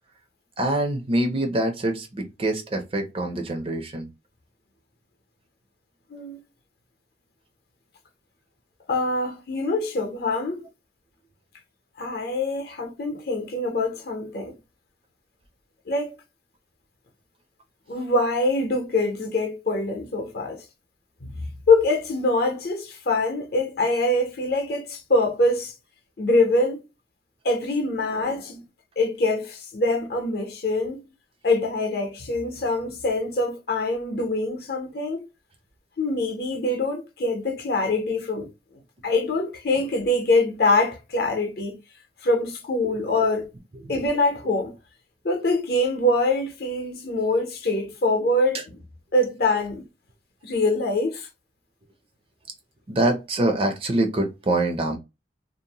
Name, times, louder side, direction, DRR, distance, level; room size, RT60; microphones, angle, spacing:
voice 1, 0.6-4.1 43.9-44.0 52.9-55.0, right 1 dB, 30° right, 0.4 m, -25 dB
voice 2, 6.1-6.4 8.9-10.7 12.0-14.6 15.9-16.2 17.9-20.6 21.2-25.7 26.2-26.8 27.4-28.6 29.0-31.0 31.4-35.3 36.0-38.5 39.0-41.8 42.2-43.5 43.9-44.7 45.2-48.8 49.1-49.8 50.4-51.3, left 2 dB, 55° left, 0.7 m, -24 dB
2.6 x 2.0 x 2.8 m
head